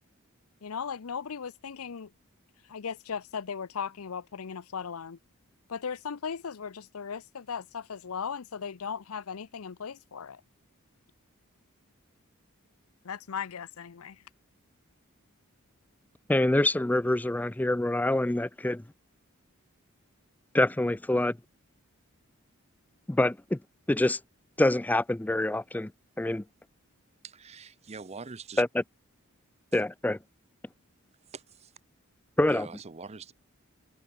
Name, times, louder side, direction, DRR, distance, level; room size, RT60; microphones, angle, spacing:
voice 1, 0.6-2.1 2.7-5.2 5.7-10.4 13.0-14.2, left 6 dB, 75° left, 0.6 m, -37 dB
voice 2, 16.3-18.8 20.5-21.4 23.1-23.6 23.9-24.2 24.6-25.9 26.2-26.4 28.6-28.8 29.7-30.2 32.4-32.7, left 1 dB, 5° left, 0.3 m, -25 dB
voice 3, 27.2-28.6 29.7-29.8 31.3-31.7 32.5-33.3, right 5 dB, 30° right, 0.6 m, -44 dB
open air
head